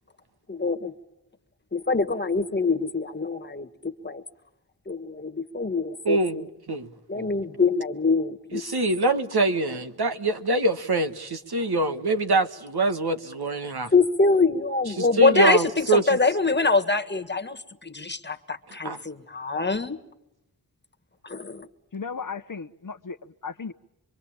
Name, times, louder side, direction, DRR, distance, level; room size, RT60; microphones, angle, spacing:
voice 1, 0.5-0.9 1.7-4.2 4.8-6.5 7.1-8.6 13.9-20.0 21.2-21.7, left 3 dB, 25° left, 1.7 m, -24 dB
voice 2, 6.0-7.3 8.5-13.9 15.0-16.2 18.7-19.0, right 2 dB, 75° right, 1.6 m, -25 dB
voice 3, 21.9-23.7, left 5 dB, 55° left, 1.0 m, -35 dB
26.0 x 23.5 x 8.8 m
wide cardioid pair, 80°, 39 cm